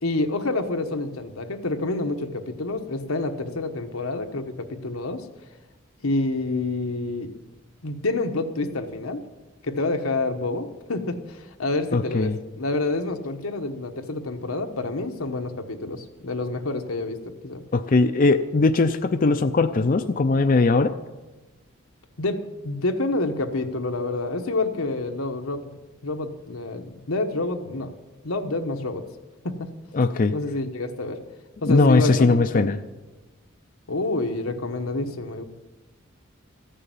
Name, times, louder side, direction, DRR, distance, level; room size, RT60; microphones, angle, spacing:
voice 1, 0.0-5.2 6.0-7.3 7.8-9.2 9.6-17.2 17.4-17.6 22.2-27.9 28.2-29.0 29.4-29.7 30.3-31.2 31.6-32.7 33.9-35.4, left 2 dB, 85° left, 6 dB, 1.2 m, -28 dB
voice 2, 11.9-12.4 17.7-20.9 29.9-30.3 31.7-32.8, left 3 dB, 40° left, 8 dB, 0.5 m, -19 dB
14.5 x 6.8 x 9.1 m, 1.2 s
head